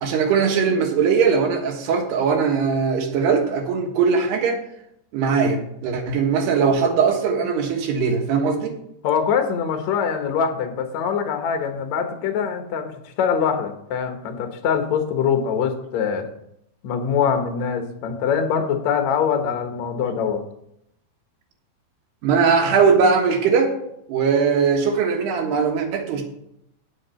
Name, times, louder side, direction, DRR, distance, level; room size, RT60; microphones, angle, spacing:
voice 1, 0.0-4.6 5.1-8.7 22.2-23.7 24.1-26.2, right 5 dB, 75° right, 2 dB, 3.4 m, -20 dB
voice 2, 9.0-12.9 13.2-16.3 16.8-20.4, left 7 dB, 65° left, 6 dB, 1.8 m, -23 dB
9.8 x 7.7 x 5.6 m, 0.76 s
omnidirectional pair, 4.8 m